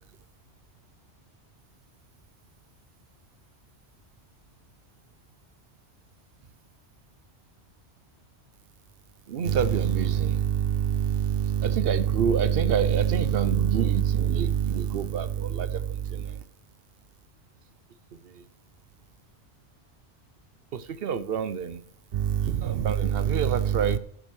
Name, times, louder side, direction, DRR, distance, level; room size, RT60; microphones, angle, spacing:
voice 1, 9.3-16.3 20.7-21.8 22.1-24.0, right 8 dB, 60° right, 0.8 m, -25 dB
11.0 x 6.4 x 6.0 m
omnidirectional pair, 1.2 m